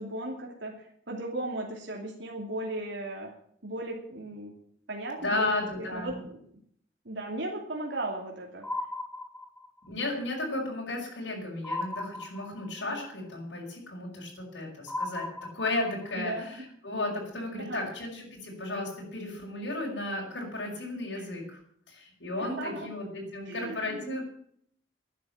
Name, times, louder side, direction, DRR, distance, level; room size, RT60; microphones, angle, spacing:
voice 1, 0.0-3.3 3.6-4.5 4.9-6.4 7.0-8.7 16.1-16.7 17.6-17.8 21.1-21.3 22.4-22.9 23.5-24.2, right 1 dB, 80° right, 0 dB, 2.8 m, -36 dB
voice 2, 5.2-6.2 9.9-15.3 15.5-21.6 21.9-24.2, left 2 dB, 85° left, -2 dB, 5.8 m, -34 dB
sound 1, 8.6-9.9 11.6-12.9 14.9-16.1, left 2 dB, 5° left, 0.5 m, -36 dB
12.0 x 9.5 x 8.9 m, 0.65 s
head